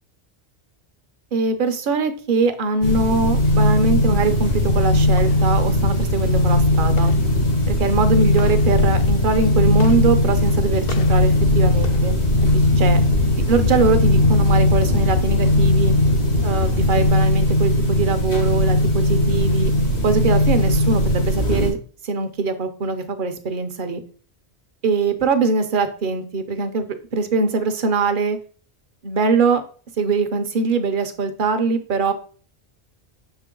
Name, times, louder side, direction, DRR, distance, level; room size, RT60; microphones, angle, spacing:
voice 1, 1.3-7.1 7.7-12.2 12.5-13.0 13.5-15.9 16.4-19.7 20.0-21.8 22.0-24.0 24.8-26.9 27.1-28.4 29.0-29.6 30.0-32.1, right 4 dB, 55° right, 9 dB, 0.9 m, -22 dB
sound 1, 2.8-21.7, equal, 90° left, 1.9 m, -19 dB
sound 2, 4.5-17.1, left 9 dB, 65° left, 0.8 m, -25 dB
6.4 x 4.5 x 3.7 m, 0.42 s
omnidirectional pair, 1.1 m